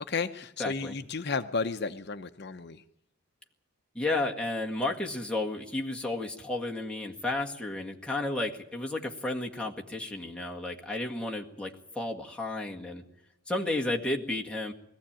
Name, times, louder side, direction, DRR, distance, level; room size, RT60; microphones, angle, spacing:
voice 1, 0.0-2.8, left 4 dB, 50° left, 8 dB, 0.7 m, -33 dB
voice 2, 0.6-0.9 4.0-13.0 13.5-14.7, left 2 dB, 5° left, -1 dB, 1.8 m, -32 dB
22.0 x 15.0 x 8.8 m, 0.81 s
head